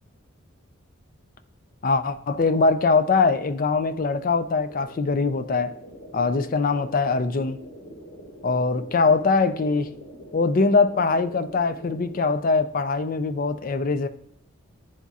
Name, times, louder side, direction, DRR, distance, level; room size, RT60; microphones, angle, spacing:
voice 1, 1.8-5.7 6.1-7.6 8.4-9.9 10.3-14.1, left 4 dB, 40° left, 0.4 m, -22 dB
sound 1, 4.7-12.2, equal, 80° left, 2.0 m, -44 dB
10.0 x 4.0 x 2.4 m
head